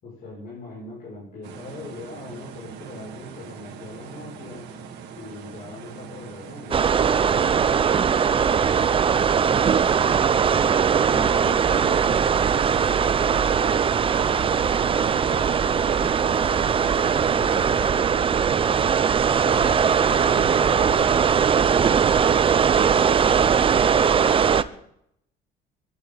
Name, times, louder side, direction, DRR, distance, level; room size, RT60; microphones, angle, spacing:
voice 1, 0.0-4.7 5.1-9.8 12.9-16.1 19.5-19.7 22.8-24.7, left 2 dB, 50° left, -5 dB, 6.7 m, -42 dB
sound 1, 1.4-17.9, right 6 dB, 85° right, 2.1 m, -41 dB
sound 2, 6.7-24.6, right 7 dB, 30° right, 0.6 m, -20 dB
voice 2, 11.0-12.3 12.8-13.0 16.0-18.6 19.4-21.2, left 7 dB, 80° left, 5 dB, 2.7 m, -41 dB
23.0 x 12.0 x 4.1 m, 0.73 s
cardioid pair, 110°, 17 cm